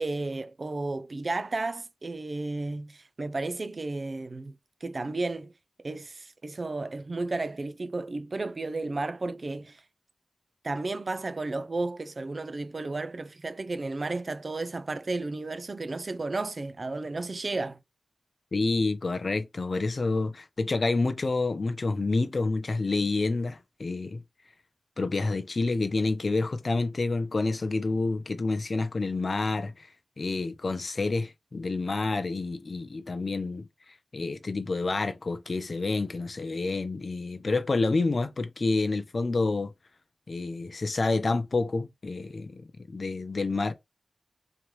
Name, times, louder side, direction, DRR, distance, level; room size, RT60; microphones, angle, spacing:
voice 1, 0.0-4.5 4.8-5.5 5.8-9.8 10.6-17.8, right 3 dB, 50° right, 0.5 m, -33 dB
voice 2, 18.5-24.2 25.0-29.9 30.2-33.7 34.1-39.7 40.3-43.7, left 3 dB, 55° left, 0.6 m, -28 dB
3.6 x 3.1 x 3.1 m
wide cardioid pair, 65°, 0 cm